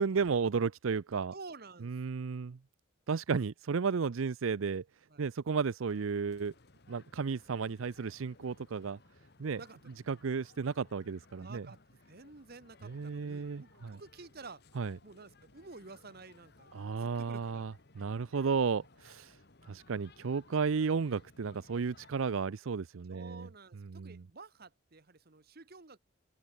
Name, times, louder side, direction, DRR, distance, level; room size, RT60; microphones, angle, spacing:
voice 1, 0.0-1.3 1.8-2.6 3.1-4.8 5.2-6.5 6.9-9.0 9.4-9.6 10.1-11.7 12.8-14.0 14.8-15.0 16.7-19.4 19.7-23.5 23.9-24.2, right 5 dB, 70° right, 0.5 m, -33 dB
voice 2, 1.3-2.3 5.1-5.3 9.6-9.9 11.4-14.6 15.0-16.7 17.0-17.6 23.1-26.0, right 3 dB, 45° right, 1.3 m, -51 dB
sound 1, 5.9-22.1, left 3 dB, 50° left, 1.5 m, -61 dB
open air
head